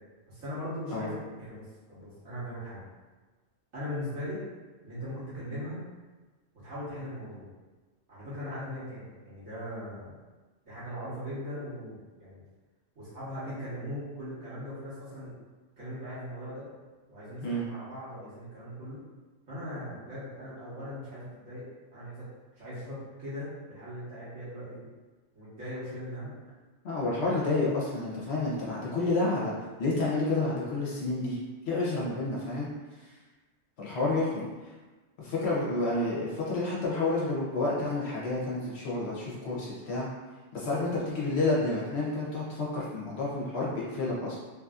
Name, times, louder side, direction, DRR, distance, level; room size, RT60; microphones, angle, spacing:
voice 1, 0.3-1.6 1.9-2.8 3.7-4.4 4.8-5.8 6.6-7.5 8.1-10.2 10.6-12.4 12.9-15.3 15.8-16.7 17.1-19.0 19.5-21.6 21.9-22.3 22.5-24.9 25.3-26.4 27.2-27.4, equal, 80° right, -12 dB, 1.4 m, -39 dB
voice 2, 26.8-29.5 29.8-31.4 31.7-32.7 33.8-34.4 35.2-40.1 40.5-44.4, left 2 dB, 60° left, -6 dB, 0.9 m, -29 dB
3.0 x 2.6 x 2.3 m, 1.3 s
omnidirectional pair, 1.3 m